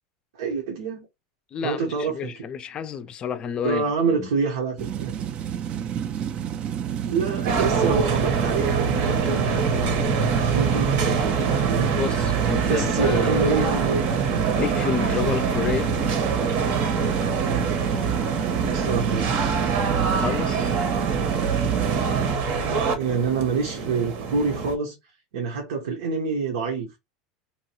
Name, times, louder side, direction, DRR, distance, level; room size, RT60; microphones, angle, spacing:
voice 1, 0.3-1.1 1.6-2.3 3.6-5.1 7.0-9.9 10.5-11.9 12.7-14.3 18.6-19.3 22.7-25.0 25.3-27.0, right 5 dB, 85° right, 0.9 m, -26 dB
voice 2, 1.5-3.9 4.2-4.3 11.8-13.6 14.5-15.9 20.2-20.8, left 7 dB, 30° left, 0.4 m, -30 dB
sound 1, 4.8-22.4, right 9 dB, 40° right, 0.4 m, -29 dB
sound 2, 7.5-24.8, right 5 dB, 55° right, 0.8 m, -25 dB
3.0 x 2.3 x 2.9 m
supercardioid pair, 125°, 3 cm